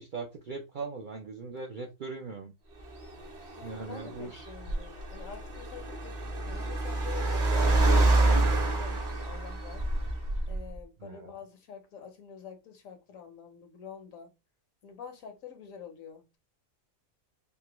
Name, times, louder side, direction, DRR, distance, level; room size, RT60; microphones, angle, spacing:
voice 1, 0.0-2.5 3.6-4.5 11.0-11.3, right 4 dB, 60° right, 0.5 m, -40 dB
Car, 2.8-10.8, right 2 dB, 40° right, 0.8 m, -28 dB
voice 2, 3.6-7.4 7.8-9.9 10.5-14.3 14.8-16.4, left 7 dB, 75° left, 1.2 m, -47 dB
3.6 x 2.1 x 2.9 m
omnidirectional pair, 1.4 m